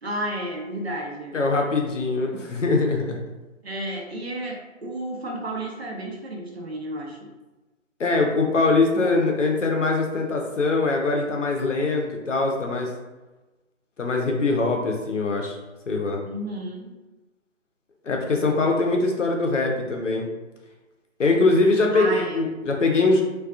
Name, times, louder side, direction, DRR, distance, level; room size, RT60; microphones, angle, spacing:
voice 1, 0.0-1.4 3.6-7.3 8.9-9.2 16.2-16.9 21.9-22.4, right 1 dB, 50° right, -1 dB, 0.5 m, -31 dB
voice 2, 1.3-3.2 8.0-12.9 14.0-15.5 15.9-16.2 18.0-20.3 21.2-23.2, left 3 dB, 65° left, 1 dB, 0.6 m, -22 dB
2.4 x 2.2 x 2.4 m, 1.1 s
figure-of-eight pair, 150°, 40 cm